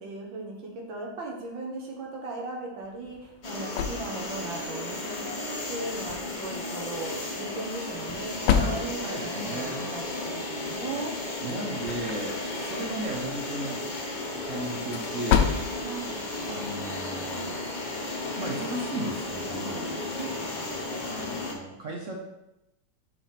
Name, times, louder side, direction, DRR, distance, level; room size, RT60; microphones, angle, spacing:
voice 1, 0.0-11.1 15.8-16.2 20.2-20.4, right 3 dB, 90° right, 0 dB, 1.9 m, -38 dB
sound 1, 2.8-17.4, left 8 dB, 90° left, 1.3 m, -33 dB
sound 2, 3.4-21.5, left 2 dB, 40° left, 0.6 m, -34 dB
voice 2, 8.5-9.9 11.4-13.8 14.4-15.6 16.4-17.6 18.4-19.9 21.1-22.2, right 1 dB, 55° right, -1 dB, 0.9 m, -35 dB
4.9 x 3.5 x 5.6 m, 0.90 s
omnidirectional pair, 2.1 m